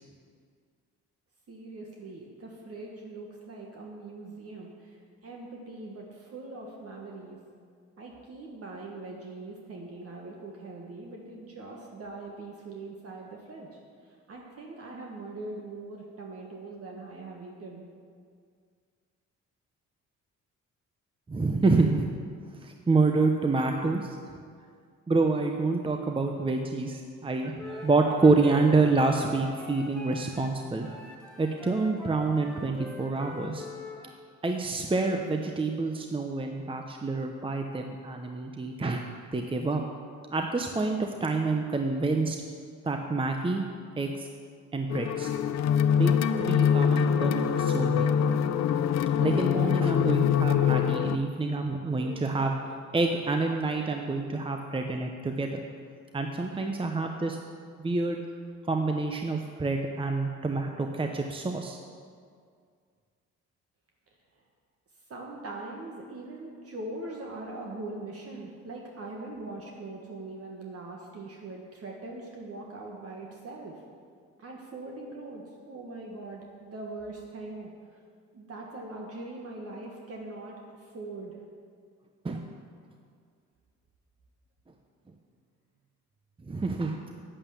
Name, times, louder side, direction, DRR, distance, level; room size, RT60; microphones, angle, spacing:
voice 1, 1.5-5.0 5.2-7.4 8.0-13.8 14.3-17.9 49.4-49.8 65.1-73.7 74.4-77.7 78.3-81.3, right 2 dB, 50° right, -1 dB, 1.6 m, -41 dB
voice 2, 21.3-22.1 22.6-24.2 25.1-31.0 31.4-33.7 34.0-34.1 34.4-39.1 39.3-39.8 40.3-42.4 42.8-43.6 44.0-44.3 44.7-45.3 45.9-48.1 49.2-52.6 52.9-55.6 56.1-57.4 57.8-58.2 58.7-61.8 82.2-82.5 86.5-87.0, right 3 dB, 15° right, 3 dB, 0.8 m, -27 dB
Wind instrument woodwind instrument, 27.6-30.5 30.8-34.0, left 2 dB, ahead, 1.7 m, -44 dB
sound 1, 44.9-51.2, left 8 dB, 60° left, 0.6 m, -24 dB
9.1 x 8.7 x 7.1 m, 2.1 s
cardioid pair, 90°, 30 cm